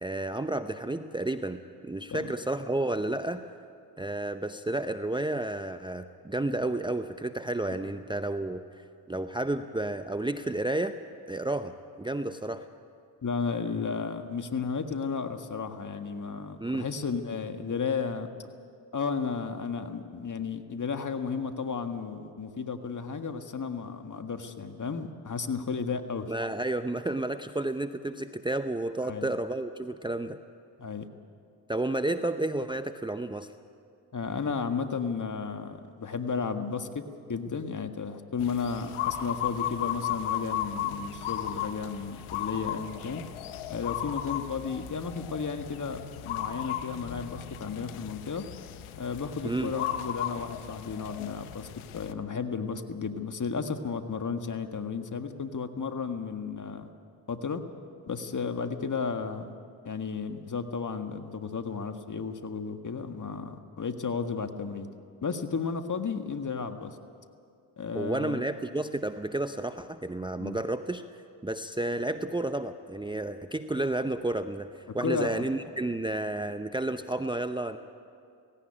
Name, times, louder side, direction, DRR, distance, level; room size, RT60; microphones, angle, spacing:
voice 1, 0.0-3.4 4.0-11.0 11.3-12.7 16.6-16.9 26.3-30.4 31.7-33.5 49.4-49.7 67.9-71.0 71.4-74.7 74.9-77.8, right 2 dB, 10° right, 9 dB, 0.8 m, -31 dB
voice 2, 13.2-18.3 18.9-26.3 29.0-29.3 30.8-31.1 34.1-37.0 37.3-43.2 43.7-48.5 49.0-51.7 51.9-56.9 57.3-57.6 58.1-59.5 59.9-64.9 65.2-67.0 67.8-68.4 70.4-70.6 75.0-75.5, left 5 dB, 40° left, 7 dB, 1.7 m, -33 dB
sound 1, 38.4-52.1, left 11 dB, 80° left, 1.1 m, -36 dB
17.5 x 17.5 x 9.9 m, 2.4 s
supercardioid pair, 55°, 49 cm